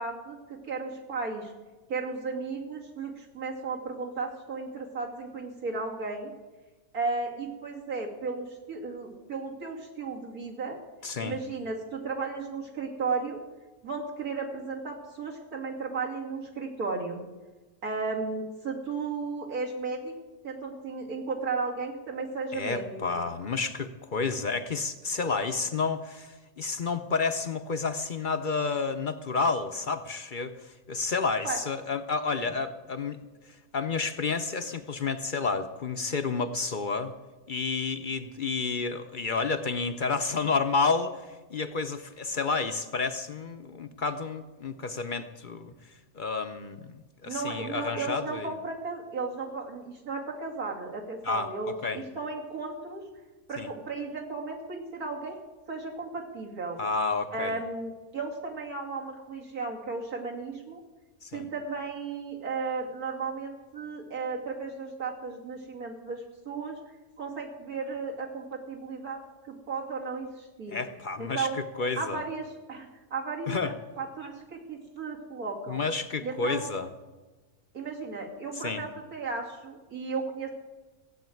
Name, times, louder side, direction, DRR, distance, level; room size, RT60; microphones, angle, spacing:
voice 1, 0.0-1.5 1.9-6.3 6.9-10.8 11.2-13.4 13.8-17.2 17.8-20.1 20.4-23.3 31.4-31.6 47.2-53.0 53.5-55.4 55.7-56.8 57.3-60.8 61.3-66.8 67.2-70.8 71.2-71.6 72.0-75.8 76.2-76.7 77.7-80.5, right 4 dB, 80° right, -1 dB, 3.0 m, -35 dB
voice 2, 11.0-11.4 22.5-33.2 33.7-37.1 37.5-45.7 46.1-48.5 51.2-52.0 53.6-53.7 56.8-57.6 61.2-61.5 70.7-71.5 71.8-72.2 73.5-73.7 75.7-76.9 78.6-78.8, left 4 dB, 45° left, 9 dB, 0.7 m, -30 dB
16.5 x 8.0 x 9.2 m, 1.2 s
omnidirectional pair, 1.5 m